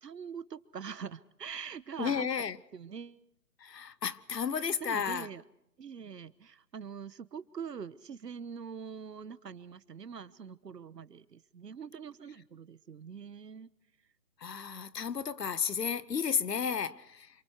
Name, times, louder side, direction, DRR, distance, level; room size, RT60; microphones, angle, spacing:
voice 1, 0.0-2.3 2.7-3.2 4.5-5.4 5.8-13.7, right 6 dB, 75° right, 1.3 m, -44 dB
voice 2, 2.0-2.6 3.6-5.3 14.4-17.3, left 7 dB, 80° left, 1.2 m, -33 dB
27.0 x 25.0 x 4.7 m
hypercardioid pair, 155°, 49 cm